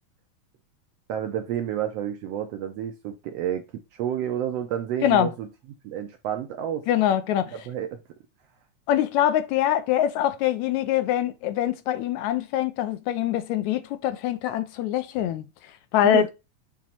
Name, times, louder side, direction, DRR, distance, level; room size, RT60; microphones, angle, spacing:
voice 1, 1.1-3.6 3.9-5.5 5.8-6.9 7.7-8.0 16.0-16.3, right 10 dB, 75° right, 1.5 m, -30 dB
voice 2, 6.9-7.5 8.9-15.4 15.9-16.3, left 11 dB, 80° left, 1.8 m, -24 dB
7.3 x 3.0 x 4.3 m
omnidirectional pair, 3.5 m